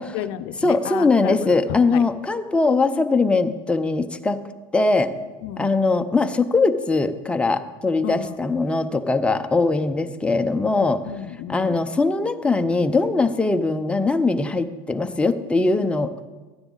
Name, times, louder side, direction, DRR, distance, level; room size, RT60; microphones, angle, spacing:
voice 1, 0.0-2.0 5.4-5.7 8.0-8.4 11.1-11.8, left 11 dB, 65° left, 12 dB, 0.6 m, -33 dB
voice 2, 0.6-4.4 4.7-5.1 5.6-11.0 11.5-16.3, left 3 dB, 10° left, 7 dB, 0.6 m, -21 dB
13.0 x 9.7 x 4.0 m, 1.2 s
supercardioid pair, 110°, 14 cm